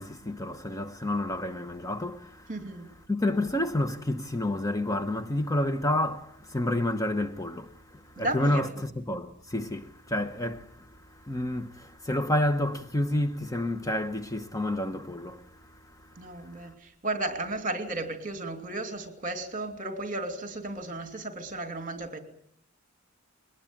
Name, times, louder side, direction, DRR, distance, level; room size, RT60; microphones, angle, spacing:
voice 1, 0.0-2.6 3.1-16.7, left 1 dB, 15° left, 1.0 m, -30 dB
voice 2, 2.5-2.9 8.2-8.8 16.2-22.2, right 2 dB, 40° right, 2.8 m, -34 dB
22.0 x 19.5 x 8.9 m
head